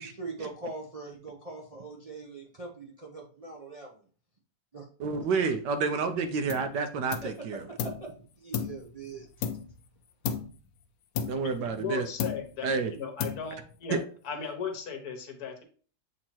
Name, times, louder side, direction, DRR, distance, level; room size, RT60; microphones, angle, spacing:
voice 1, 0.0-4.0 4.7-4.9 5.2-5.3 7.2-7.3 7.7-9.5, right 3 dB, 50° right, -2 dB, 0.4 m, -42 dB
voice 2, 5.0-7.6 11.3-12.0 12.6-12.9 13.9-14.0, right 5 dB, 70° right, 8 dB, 1.3 m, -29 dB
sound 1, 6.5-6.8 7.1-8.1 8.5-9.9 10.2-10.7 11.2-11.9 12.2-12.7 13.2-13.8, left 7 dB, 80° left, 1.3 m, -35 dB
voice 3, 11.8-14.0 14.2-15.6, left 6 dB, 60° left, 3 dB, 1.6 m, -36 dB
7.4 x 2.9 x 4.4 m, 0.42 s
omnidirectional pair, 2.0 m